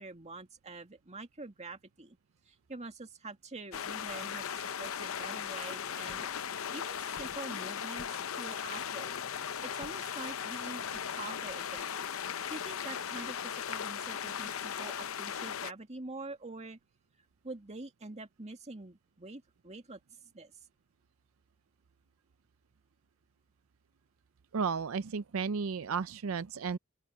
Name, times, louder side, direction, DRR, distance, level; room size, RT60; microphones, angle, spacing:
voice 1, 0.0-2.2 2.5-6.3 6.7-12.0 12.5-16.8 17.4-20.5, right 2 dB, 35° right, 2.2 m, -46 dB
sound 1, 3.7-15.7, left 8 dB, 75° left, 0.7 m, -38 dB
voice 2, 24.5-26.8, right 5 dB, 75° right, 0.5 m, -33 dB
open air
head